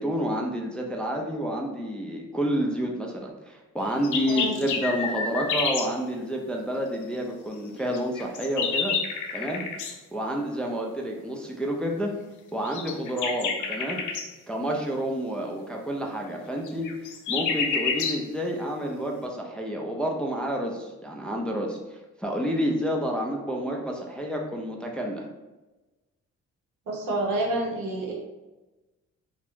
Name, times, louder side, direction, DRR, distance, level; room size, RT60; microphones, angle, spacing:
voice 1, 0.0-8.9 9.3-9.6 10.1-12.1 12.5-14.0 14.5-16.9 17.3-25.3, equal, 5° left, 0 dB, 0.3 m, -29 dB
sound 1, 3.8-5.9 7.9-9.9 12.6-14.3 16.6-18.2, left 5 dB, 80° left, 0.5 m, -29 dB
voice 2, 4.2-4.5 26.9-28.1, right 2 dB, 90° right, -1 dB, 0.7 m, -28 dB
2.3 x 2.0 x 3.0 m, 1.1 s
cardioid pair, 90°, 30 cm